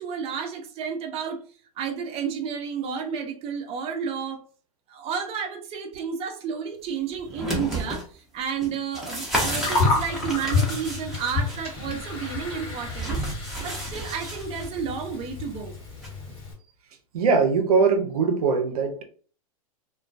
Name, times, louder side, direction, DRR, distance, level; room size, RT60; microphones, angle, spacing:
voice 1, 0.0-1.4 1.8-4.4 4.9-13.2 13.6-15.7, right 6 dB, 30° right, 0.6 m, -31 dB
sound 1, 7.1-8.0 8.6-11.6 12.9-14.7 16.0-16.1, right 1 dB, ahead, 0.8 m, -31 dB
Gurgling, 9.3-16.5, left 4 dB, 30° left, 1.3 m, -30 dB
voice 2, 17.1-19.0, right 5 dB, 80° right, 0.6 m, -21 dB
2.2 x 2.1 x 2.5 m
hypercardioid pair, 110°, 19 cm